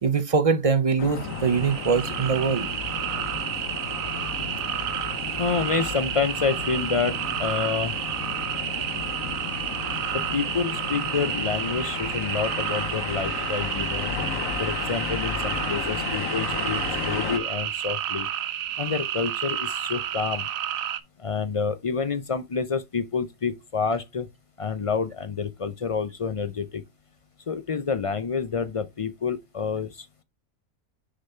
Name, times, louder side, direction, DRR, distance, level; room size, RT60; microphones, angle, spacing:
voice 1, 0.0-2.7, right 5 dB, 45° right, 0.4 m, -23 dB
sound 1, 1.0-17.4, left 6 dB, 75° left, 1.4 m, -33 dB
sound 2, 1.2-21.0, right 10 dB, 85° right, 1.1 m, -31 dB
voice 2, 5.4-7.9 10.3-14.1 14.6-18.3 18.8-20.5 21.2-24.3 24.6-26.8 27.5-30.2, left 5 dB, 55° left, 0.3 m, -28 dB
6.5 x 3.9 x 4.3 m
omnidirectional pair, 1.4 m